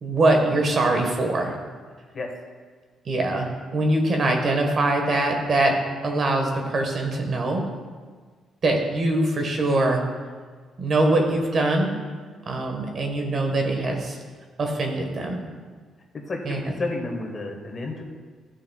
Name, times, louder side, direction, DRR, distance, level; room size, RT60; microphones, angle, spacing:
voice 1, 0.0-1.5 3.0-5.7 6.0-7.6 8.6-10.0 10.8-11.9 12.5-14.2 14.6-15.4 16.4-16.6, right 2 dB, 50° right, 2 dB, 1.3 m, -23 dB
voice 2, 16.3-18.0, left 2 dB, 40° left, 2 dB, 1.4 m, -31 dB
12.5 x 6.1 x 2.3 m, 1.5 s
cardioid pair, 90°, 0 cm